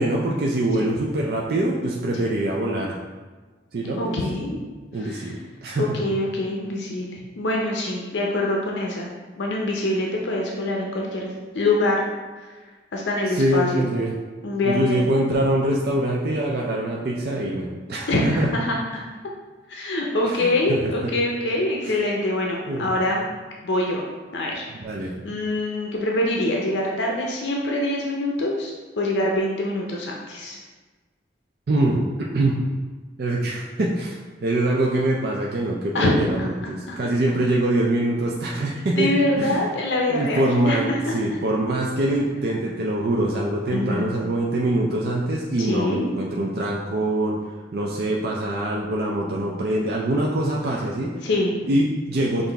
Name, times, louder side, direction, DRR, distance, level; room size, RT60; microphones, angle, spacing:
voice 1, 0.0-2.9 3.7-4.4 4.9-6.0 13.3-14.2 14.6-18.5 20.2-21.1 21.8-22.0 22.6-22.9 24.8-25.1 31.7-32.0 32.3-32.6 33.2-39.1 39.4-39.6 40.1-47.4 47.7-51.1 51.6-52.5, right 1 dB, 55° right, -3 dB, 0.4 m, -24 dB
voice 2, 4.0-4.6 5.0-5.3 5.8-9.1 9.4-12.0 12.4-12.5 12.9-13.8 14.4-15.1 18.1-19.0 19.7-23.3 23.6-24.0 24.3-24.7 25.2-30.6 35.9-36.5 36.9-37.0 39.0-41.2 43.7-44.1 45.6-46.0 51.2-51.5, left 1 dB, 80° left, -1 dB, 0.5 m, -24 dB
5.6 x 2.5 x 3.4 m, 1.3 s
head